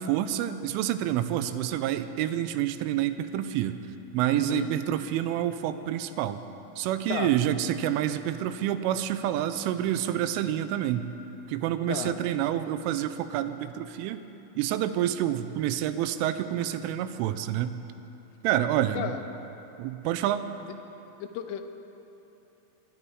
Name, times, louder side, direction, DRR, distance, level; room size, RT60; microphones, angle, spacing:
voice 1, 0.0-3.8 4.1-6.4 6.8-11.1 11.5-14.2 14.6-17.8 18.4-19.1 19.8-20.4, right 11 dB, 85° right, 11 dB, 3.1 m, -28 dB
voice 2, 4.3-4.7 7.1-7.3 11.9-12.2 19.0-19.2 21.2-21.7, left 10 dB, 85° left, 7 dB, 3.3 m, -33 dB
22.5 x 11.0 x 4.8 m, 3.0 s
omnidirectional pair, 5.6 m